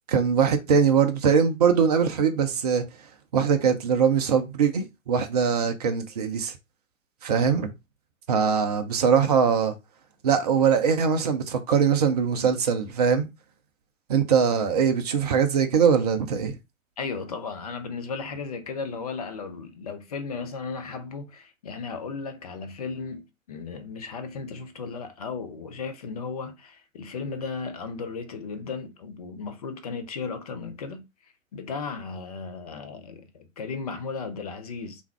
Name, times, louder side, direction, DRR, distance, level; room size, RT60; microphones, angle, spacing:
voice 1, 0.1-2.8 3.3-6.5 7.2-7.7 8.3-9.7 10.2-13.3 14.1-16.6, right 6 dB, 30° right, 0.4 m, -22 dB
voice 2, 17.0-31.0 31.5-35.0, left 4 dB, 30° left, 0.5 m, -35 dB
3.4 x 2.6 x 3.3 m
figure-of-eight pair, 120°, 41 cm